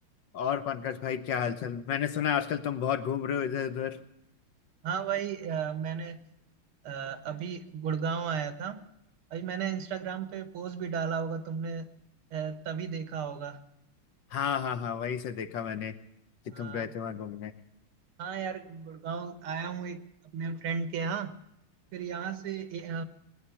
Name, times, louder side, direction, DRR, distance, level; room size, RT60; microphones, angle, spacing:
voice 1, 0.3-4.0 14.3-15.9 16.6-17.5, left 8 dB, 65° left, 10 dB, 1.5 m, -31 dB
voice 2, 4.8-6.2 6.8-8.8 9.3-11.9 12.3-13.6 16.5-16.9 18.2-20.0 20.3-21.3 21.9-23.0, right 6 dB, 90° right, 10 dB, 2.1 m, -34 dB
19.0 x 9.8 x 6.9 m, 0.82 s
omnidirectional pair, 2.3 m